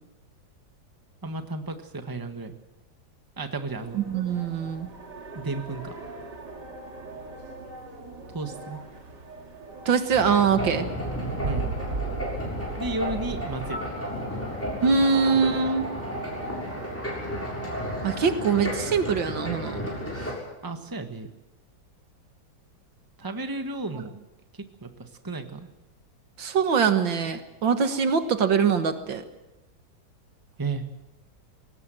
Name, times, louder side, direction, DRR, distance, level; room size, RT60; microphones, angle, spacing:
voice 1, 1.2-2.5 3.4-4.0 5.3-6.0 8.3-8.8 11.4-11.8 12.7-13.8 20.6-21.3 23.2-24.2 24.5-25.7 30.6-30.8, right 3 dB, 10° right, 6 dB, 1.4 m, -33 dB
sound 1, 3.7-17.0, right 2 dB, 65° right, 3.2 m, -43 dB
voice 2, 3.9-4.9 9.9-10.9 14.8-15.8 18.0-19.8 26.4-29.2, right 6 dB, 80° right, 8 dB, 2.3 m, -23 dB
sound 2, 10.1-20.3, equal, 5° left, 6.8 m, -33 dB
sound 3, 11.1-13.9, right 4 dB, 35° right, 1.6 m, -34 dB
22.0 x 18.0 x 7.7 m, 0.98 s
omnidirectional pair, 2.0 m